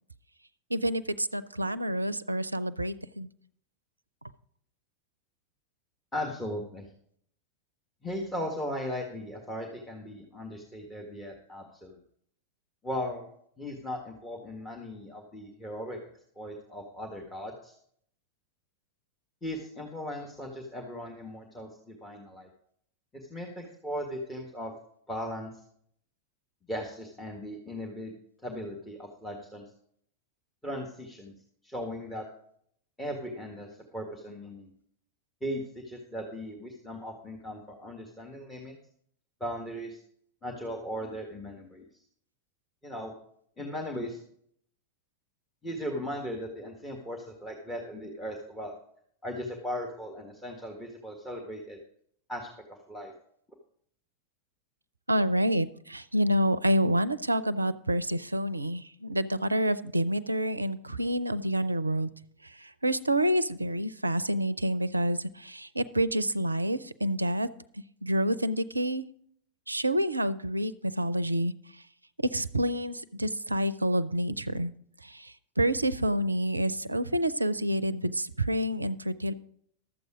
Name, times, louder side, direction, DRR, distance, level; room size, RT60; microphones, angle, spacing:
voice 1, 0.7-3.3 55.1-62.1 62.4-67.5 67.7-69.0 69.7-71.8 72.2-74.7 75.0-79.3, equal, 85° right, 16 dB, 0.5 m, -28 dB
voice 2, 6.1-6.9 8.0-12.0 12.8-13.3 13.6-16.0 16.4-17.8 19.4-22.5 23.1-24.7 25.1-25.5 26.7-28.1 28.4-29.6 30.6-31.3 31.6-32.2 33.0-33.7 33.9-34.7 35.4-38.8 39.4-40.0 40.4-41.9 42.8-43.1 43.6-44.2 45.6-48.7 49.2-51.8 52.3-53.1, equal, 10° left, 1 dB, 1.6 m, -37 dB
12.5 x 7.9 x 5.0 m, 0.66 s
figure-of-eight pair, 90°, 0 cm